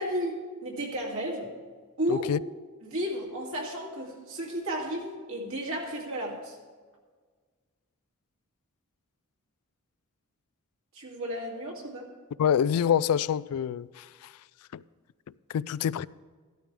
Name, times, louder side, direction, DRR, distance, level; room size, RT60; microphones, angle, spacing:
voice 1, 0.0-1.5 2.0-2.3 2.8-6.6 10.9-12.1, equal, 65° right, 2.4 m, -33 dB
voice 2, 2.1-2.4 12.4-14.3 14.7-14.8 15.5-16.1, left 8 dB, 85° left, 0.3 m, -26 dB
14.0 x 12.5 x 3.3 m
head